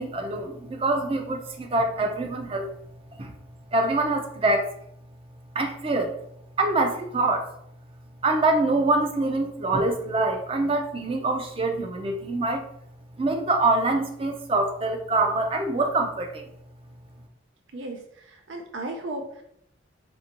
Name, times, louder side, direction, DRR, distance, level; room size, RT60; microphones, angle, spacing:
voice 1, 0.0-2.7 3.1-3.3 3.7-4.7 5.5-6.2 6.6-7.5 8.2-12.7 13.2-16.5, right 2 dB, 30° right, 4 dB, 0.4 m, -25 dB
voice 2, 17.7-19.4, right 2 dB, 85° right, 3 dB, 0.5 m, -35 dB
4.3 x 2.6 x 2.8 m, 0.73 s
head